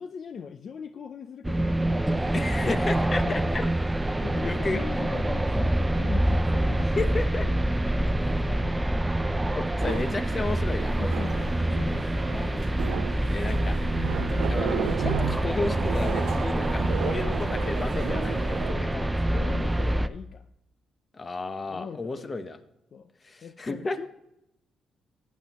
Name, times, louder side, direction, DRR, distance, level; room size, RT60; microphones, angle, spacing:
voice 1, 0.0-2.1 2.4-2.8 3.2-3.7 4.2-8.9 11.0-12.7 13.1-13.4 14.1-14.5 18.7-20.4 21.6-22.3 22.9-23.1 23.4-24.1, left 6 dB, 55° left, 10 dB, 0.5 m, -40 dB
sound 1, 1.4-20.1, right 1 dB, 10° right, 0.5 m, -26 dB
voice 2, 2.3-3.6 4.4-4.8 7.0-7.5 9.6-11.0 13.3-13.8 14.5-18.9 21.1-22.6 23.2-24.0, left 3 dB, 30° left, 11 dB, 0.9 m, -32 dB
sound 2, 9.8-18.7, right 10 dB, 85° right, 0.6 m, -35 dB
14.5 x 9.4 x 3.0 m, 0.86 s
cardioid pair, 90°, 0 cm